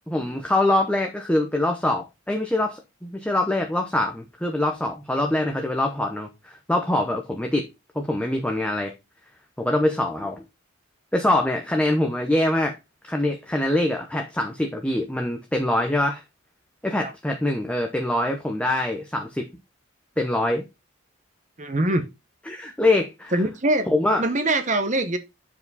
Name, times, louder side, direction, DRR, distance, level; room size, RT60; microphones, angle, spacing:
voice 1, 0.1-7.7 8.0-8.9 9.6-10.4 11.1-12.8 13.0-16.2 16.8-19.5 20.2-20.6 22.5-23.3 23.9-24.2, left 1 dB, 5° left, 0.7 m, -24 dB
voice 2, 21.6-22.0 23.3-23.9 24.2-25.2, right 1 dB, 35° right, 0.8 m, -23 dB
7.6 x 4.8 x 4.0 m
head